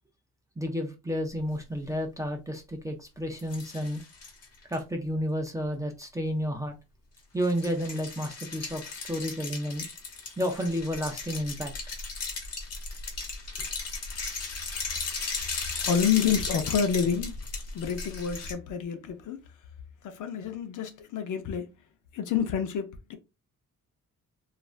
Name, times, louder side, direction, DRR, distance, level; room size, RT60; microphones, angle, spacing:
voice 1, 0.6-4.0 4.7-6.8 7.3-9.9 10.4-11.7, equal, 10° right, 0.4 m, -31 dB
sound 1, 3.4-4.8 7.4-18.5, left 4 dB, 50° left, 1.0 m, -36 dB
voice 2, 15.8-17.4 17.7-19.4 20.0-21.7 22.1-23.2, left 7 dB, 70° left, 0.7 m, -28 dB
3.2 x 2.5 x 2.4 m
wide cardioid pair, 180°, 32 cm